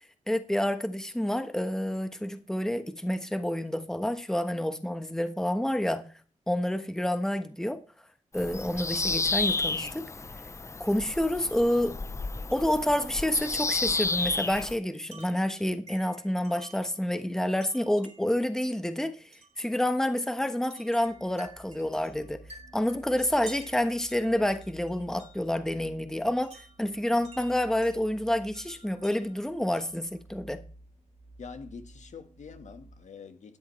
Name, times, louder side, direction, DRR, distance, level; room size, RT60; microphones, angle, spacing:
voice 1, 0.3-6.0 6.5-7.8 8.3-10.0 10.8-12.0 12.5-19.3 19.6-22.4 22.7-30.6, left 1 dB, 5° left, 1.2 m, -28 dB
Bird vocalization bird call bird song, 8.3-14.8, left 3 dB, 20° left, 0.5 m, -31 dB
Wind chime, 12.5-12.9 13.4-17.0 17.6-18.4 19.3-19.6 20.6-25.6 26.4-28.0 28.5-30.1, right 3 dB, 55° right, 3.1 m, -52 dB
sound 1, 20.9-33.0, right 1 dB, 80° right, 3.3 m, -52 dB
voice 2, 31.4-33.6, left 5 dB, 65° left, 1.5 m, -45 dB
12.5 x 9.7 x 3.2 m
wide cardioid pair, 110°, 13 cm